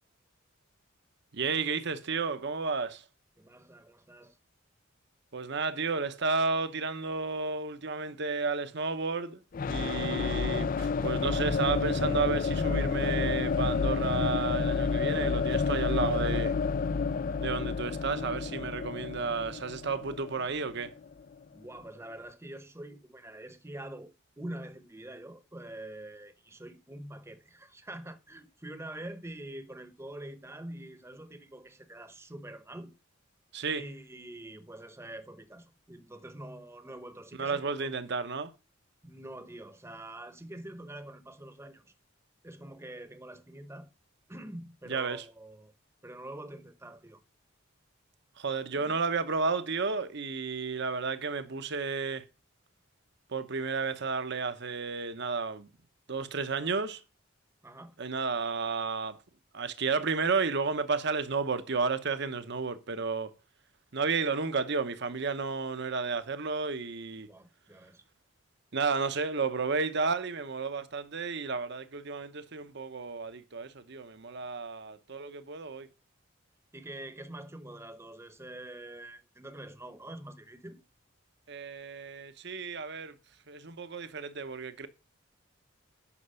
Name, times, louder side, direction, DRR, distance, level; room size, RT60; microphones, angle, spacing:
voice 1, 1.3-3.0 5.3-16.5 17.4-20.9 33.5-33.8 37.4-38.5 44.9-45.2 48.4-52.2 53.3-55.7 56.1-57.0 58.0-59.2 59.5-63.3 63.9-67.3 68.7-75.9 81.5-83.1 83.5-84.9, right 4 dB, 60° right, 0.9 m, -32 dB
voice 2, 3.4-4.4 21.5-32.9 33.7-37.9 39.0-41.9 42.4-43.9 44.3-45.7 46.0-47.2 48.7-49.0 57.6-57.9 67.3-68.0 76.7-80.8, right 1 dB, 15° right, 0.9 m, -45 dB
sound 1, 9.5-21.3, left 5 dB, 40° left, 0.4 m, -30 dB
9.9 x 5.9 x 5.5 m
head